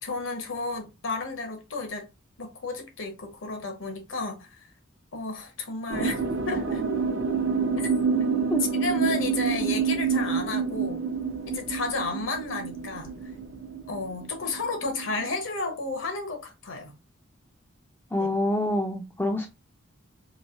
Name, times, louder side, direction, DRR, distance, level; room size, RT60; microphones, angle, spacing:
voice 1, 0.0-2.1 2.4-4.6 5.1-6.8 7.8-7.9 8.7-11.0 11.5-13.1 13.9-16.9 18.1-18.3, left 3 dB, 75° left, 0.9 m, -32 dB
sound 1, 5.9-15.3, right 5 dB, 65° right, 0.5 m, -28 dB
voice 2, 18.1-19.5, left 1 dB, 10° left, 0.3 m, -26 dB
3.1 x 2.7 x 2.7 m
head